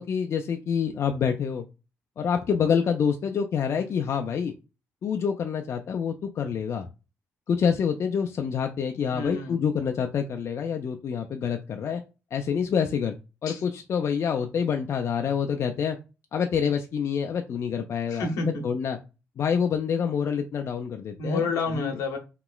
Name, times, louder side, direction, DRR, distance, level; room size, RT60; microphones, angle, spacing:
voice 1, 0.0-1.7 2.2-4.5 5.0-6.9 7.5-12.0 12.3-13.1 13.4-16.0 16.3-18.3 18.6-19.0 19.4-21.4 21.7-21.9, left 7 dB, 55° left, 0.3 m, -27 dB
voice 2, 9.1-9.6 13.5-13.6 18.1-18.6 21.2-22.2, left 3 dB, 85° left, 0.8 m, -29 dB
3.0 x 2.9 x 2.3 m
cardioid pair, 70°, 6 cm